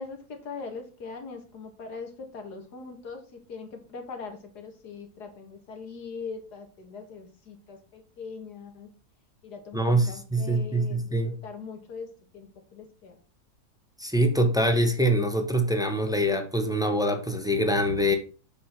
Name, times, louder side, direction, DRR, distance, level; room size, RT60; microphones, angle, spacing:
voice 1, 0.0-8.9 9.4-13.2, left 5 dB, 90° left, 2.3 m, -41 dB
voice 2, 9.7-11.4 14.0-18.2, right 1 dB, 5° right, 1.0 m, -24 dB
7.8 x 5.1 x 5.8 m
omnidirectional pair, 1.7 m